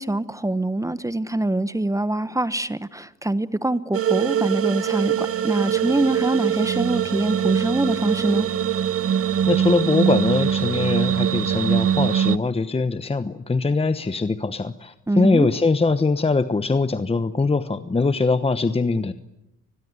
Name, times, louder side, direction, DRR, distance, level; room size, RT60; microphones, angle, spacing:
voice 1, 0.0-8.5 15.1-15.5, right 2 dB, 10° right, 15 dB, 1.1 m, -24 dB
sound 1, 3.9-12.4, right 9 dB, 50° right, 0.9 m, -22 dB
voice 2, 9.5-19.1, left 3 dB, 20° left, 12 dB, 1.1 m, -22 dB
29.0 x 21.0 x 9.6 m, 0.88 s
cardioid pair, 90°, 30 cm